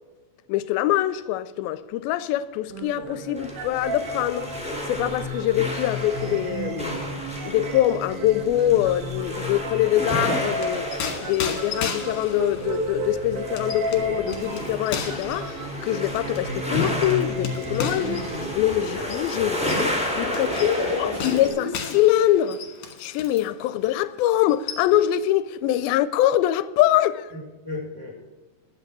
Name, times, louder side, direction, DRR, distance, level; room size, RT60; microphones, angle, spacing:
voice 1, 0.5-4.5 4.9-7.1 7.5-10.9 11.2-20.7 21.0-22.6 23.0-27.3, left 13 dB, 85° left, 2.3 m, -24 dB
sound 1, 2.7-18.5, right 1 dB, 75° right, 3.2 m, -33 dB
sound 2, 3.3-21.5, left 1 dB, ahead, 1.9 m, -32 dB
sound 3, 10.3-23.5 23.8-24.0 24.3-25.2, left 6 dB, 60° left, 2.4 m, -36 dB
voice 2, 20.3-21.7 27.3-28.1, left 3 dB, 30° right, 3.5 m, -31 dB
11.5 x 8.1 x 6.1 m
omnidirectional pair, 4.3 m